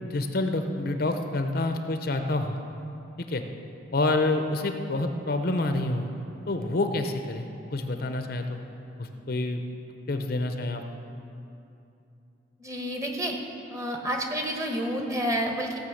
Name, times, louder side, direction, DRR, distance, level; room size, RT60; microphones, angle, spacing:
voice 1, 0.0-2.6 3.2-3.4 3.9-6.1 6.5-8.6 9.0-9.6 10.1-10.8, left 2 dB, 55° left, 6 dB, 0.7 m, -28 dB
voice 2, 12.6-13.4 13.7-15.8, equal, 15° right, 1 dB, 1.1 m, -29 dB
16.0 x 5.8 x 7.1 m, 2.7 s
head